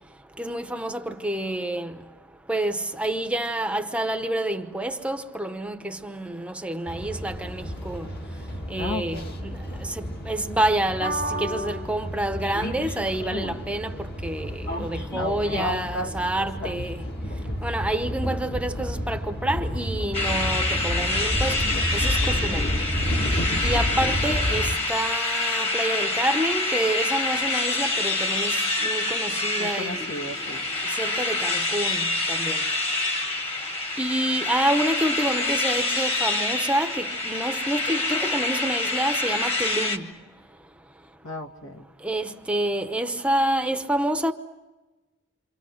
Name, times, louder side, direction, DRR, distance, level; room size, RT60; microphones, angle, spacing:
voice 1, 0.4-2.0 2.5-8.1 8.7-17.0 17.6-21.6 21.9-22.7 23.6-30.1 31.0-32.6 34.0-40.0 42.0-44.3, right 1 dB, 5° right, 0.9 m, -28 dB
sound 1, 6.9-24.8, equal, 50° left, 2.1 m, -30 dB
voice 2, 8.8-9.4 15.2-16.8 29.6-30.7 41.2-41.9, left 2 dB, 70° left, 2.2 m, -34 dB
sound 2, 20.1-40.0, left 2 dB, 30° left, 1.8 m, -26 dB
28.0 x 26.0 x 6.5 m
head